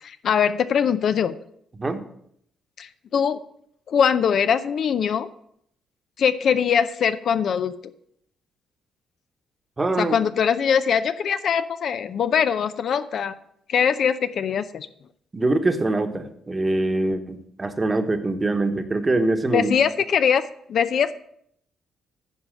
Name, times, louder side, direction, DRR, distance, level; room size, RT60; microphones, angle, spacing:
voice 1, 0.0-1.3 2.8-3.4 3.9-5.3 6.2-7.7 10.0-13.3 13.7-14.9 19.5-20.4 20.7-21.2, left 7 dB, 60° left, 12 dB, 0.5 m, -22 dB
voice 2, 9.8-10.2 15.3-19.7, right 2 dB, 25° right, 8 dB, 1.1 m, -23 dB
9.9 x 4.9 x 7.7 m, 0.70 s
cardioid pair, 90°, 0 cm